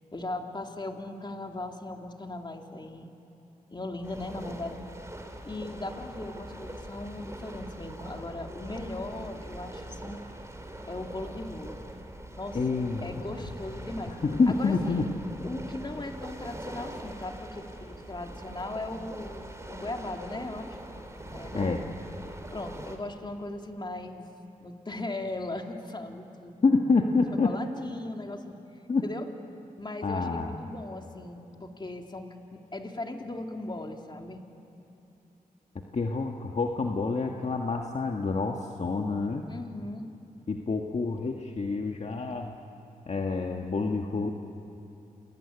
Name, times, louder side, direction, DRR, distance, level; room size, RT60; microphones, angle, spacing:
voice 1, 0.1-3.1 3.7-4.8 5.4-10.2 10.9-11.8 12.3-12.6 13.0-14.1 14.5-15.0 15.4-20.8 21.3-21.7 22.5-24.3 24.6-26.5 27.4-28.6 29.0-29.3 29.8-34.4 39.5-40.1, left 2 dB, 30° left, 3 dB, 2.7 m, -38 dB
sound 1, 4.0-23.0, right 1 dB, 20° right, 3.9 m, -42 dB
voice 2, 12.5-13.4 14.1-15.1 21.5-21.8 26.6-27.5 28.9-29.0 30.0-30.5 35.9-39.5 40.5-42.6 43.1-44.3, left 4 dB, 50° left, 2 dB, 1.6 m, -27 dB
28.0 x 21.5 x 9.9 m, 2.9 s
cardioid pair, 65°, 15 cm